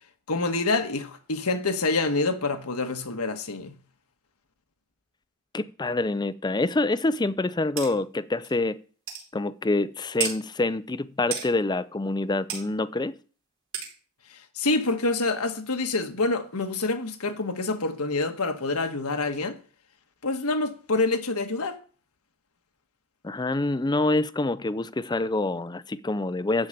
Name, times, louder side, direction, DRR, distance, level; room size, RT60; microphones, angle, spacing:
voice 1, 0.3-3.7 14.3-19.6 20.2-21.8, left 3 dB, 80° left, 1.5 m, -27 dB
voice 2, 5.5-8.8 9.3-13.2 23.2-26.7, left 2 dB, 20° left, 0.5 m, -26 dB
sound 1, 7.8-7.9 8.4-8.5 9.1-9.2 10.2-10.4 11.3-11.5 12.5-12.6 13.7-13.9, right 8 dB, 65° right, 5.0 m, -30 dB
13.5 x 4.9 x 8.8 m
head